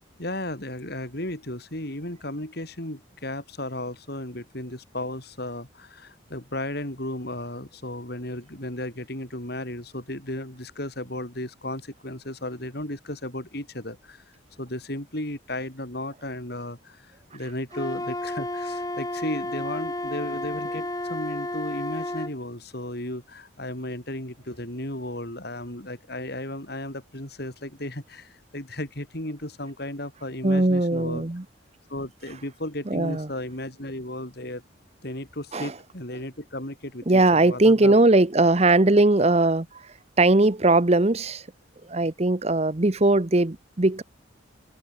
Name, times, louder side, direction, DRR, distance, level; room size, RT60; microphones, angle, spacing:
voice 1, 0.2-14.2 14.6-31.2 31.9-34.6 35.0-38.0 39.2-39.3, left 1 dB, 55° left, 4.8 m, -34 dB
Wind instrument woodwind instrument, 17.7-22.3, left 1 dB, 20° left, 4.6 m, -32 dB
voice 2, 30.4-31.4 32.9-33.3 35.5-35.7 37.1-39.7 40.2-41.4 41.9-44.0, right 2 dB, 30° right, 0.9 m, -20 dB
head